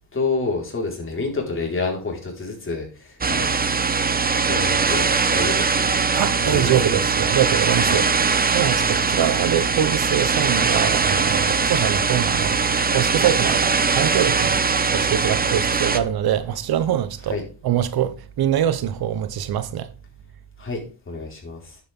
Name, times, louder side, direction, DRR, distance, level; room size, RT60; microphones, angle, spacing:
voice 1, 0.1-3.6 4.4-5.9 6.4-7.0 7.8-8.0 17.3-17.4 20.6-20.8 21.1-21.8, left 3 dB, 30° left, 4.5 m, -28 dB
sound 1, 3.2-16.0, right 5 dB, 20° right, 0.9 m, -21 dB
voice 2, 6.2-8.1 8.5-12.6 12.9-14.6 14.9-17.4 17.6-19.9, right 10 dB, 65° right, 1.0 m, -23 dB
9.8 x 8.4 x 3.7 m
cardioid pair, 105°, 40 cm